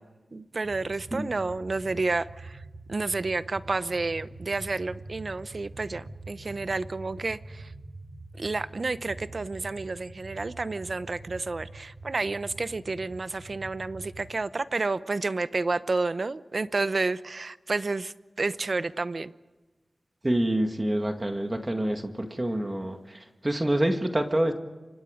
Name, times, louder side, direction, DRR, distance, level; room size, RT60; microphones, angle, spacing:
voice 1, 0.3-2.6 2.9-7.6 8.4-19.3, right 3 dB, 55° right, 14 dB, 0.8 m, -30 dB
sound 1, 0.6-14.3, right 2 dB, 75° right, 3.1 m, -45 dB
voice 2, 20.2-24.5, right 1 dB, 20° right, 5 dB, 1.9 m, -27 dB
29.5 x 25.5 x 5.1 m, 1.2 s
wide cardioid pair, 90°, 0 cm